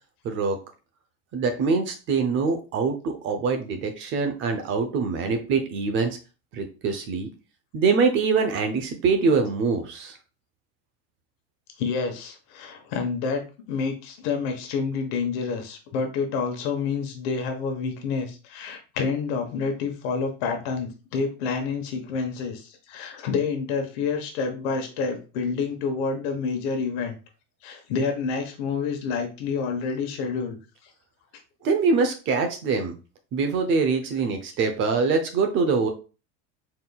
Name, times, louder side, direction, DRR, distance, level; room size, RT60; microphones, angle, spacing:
voice 1, 0.2-0.6 1.3-6.2 6.5-7.3 7.7-10.2 31.6-32.9 33.3-35.9, right 4 dB, 35° right, 6 dB, 0.7 m, -24 dB
voice 2, 11.8-13.4 13.7-27.2 27.6-30.6, left 5 dB, 65° left, 5 dB, 1.1 m, -28 dB
4.3 x 3.7 x 2.3 m, 0.33 s
supercardioid pair, 150°, 34 cm